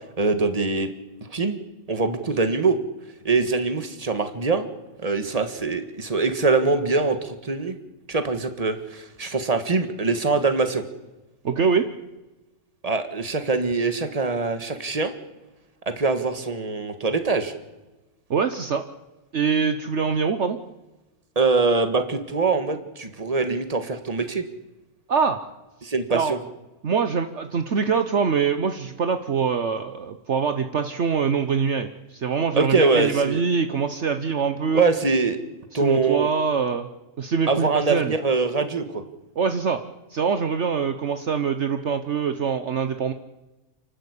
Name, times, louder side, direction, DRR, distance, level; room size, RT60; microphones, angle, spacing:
voice 1, 0.2-0.9 1.3-1.6 1.9-2.8 3.2-4.7 5.0-7.8 8.1-10.8 12.8-15.2 15.9-17.5 21.4-24.4 25.8-26.4 32.5-33.4 34.7-35.4 35.7-36.3 37.5-39.0, right 4 dB, 25° right, 8 dB, 1.8 m, -23 dB
voice 2, 11.4-11.9 18.3-18.8 19.3-20.6 25.1-25.4 26.1-26.3 26.8-34.8 35.7-36.9 37.2-38.1 39.4-39.8 40.1-43.1, right 6 dB, 55° right, 8 dB, 1.3 m, -24 dB
29.0 x 12.5 x 8.4 m, 1.1 s
omnidirectional pair, 1.5 m